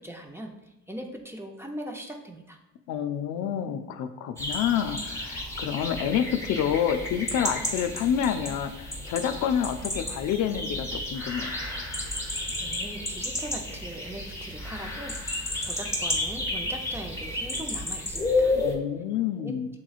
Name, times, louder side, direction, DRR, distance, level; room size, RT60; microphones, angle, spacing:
voice 1, 0.0-2.6 12.6-18.5 19.4-19.5, right 1 dB, 10° right, 2 dB, 0.5 m, -40 dB
voice 2, 2.9-11.5 18.5-19.7, left 9 dB, 75° left, 8 dB, 0.4 m, -28 dB
sound 1, 4.4-18.7, left 2 dB, 10° left, 1.0 m, -32 dB
7.0 x 3.0 x 2.3 m, 0.92 s
cardioid pair, 90°, 30 cm